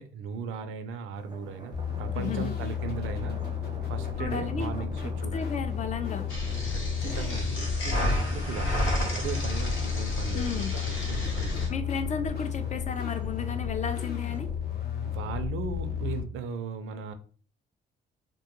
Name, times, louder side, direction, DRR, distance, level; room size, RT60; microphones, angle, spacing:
voice 1, 0.0-1.7 2.0-3.4 3.9-5.5 6.7-11.9 15.0-17.1, right 6 dB, 85° right, 9 dB, 0.4 m, -37 dB
sound 1, 1.2-14.6, right 2 dB, 20° right, 0.5 m, -47 dB
sound 2, 1.7-16.2, left 7 dB, 55° left, 0.7 m, -33 dB
voice 2, 2.1-2.5 4.2-4.9 5.3-6.3 10.3-10.7 11.7-14.5, left 5 dB, 35° left, 9 dB, 0.4 m, -34 dB
sound 3, 6.3-11.7, left 1 dB, 80° left, 0.9 m, -31 dB
2.2 x 2.2 x 2.8 m, 0.41 s
cardioid pair, 90°, 20 cm